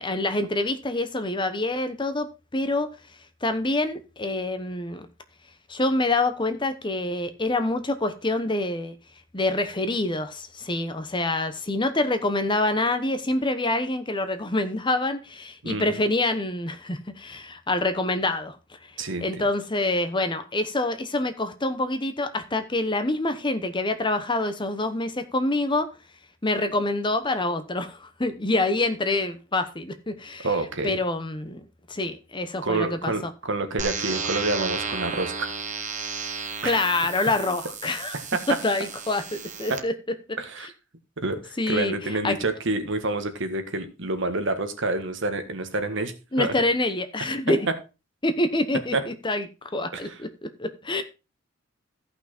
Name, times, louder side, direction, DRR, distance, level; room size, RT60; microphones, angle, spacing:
voice 1, 0.0-2.9 3.4-5.1 5.7-8.9 9.3-18.6 19.2-25.9 26.4-30.5 30.8-33.3 36.6-38.2 38.5-39.9 40.3-40.4 41.6-42.4 46.3-47.7 48.2-49.5 49.7-51.0, left 2 dB, 25° left, 1.0 m, -26 dB
voice 2, 19.0-19.5 30.4-30.9 32.6-35.5 36.6-36.8 38.1-38.2 40.4-40.7 41.2-46.1 46.4-46.5 48.9-49.0 49.9-50.2, right 2 dB, 65° right, 1.6 m, -28 dB
sound 1, 33.8-39.8, right 5 dB, 35° right, 1.3 m, -33 dB
14.0 x 5.8 x 4.3 m
head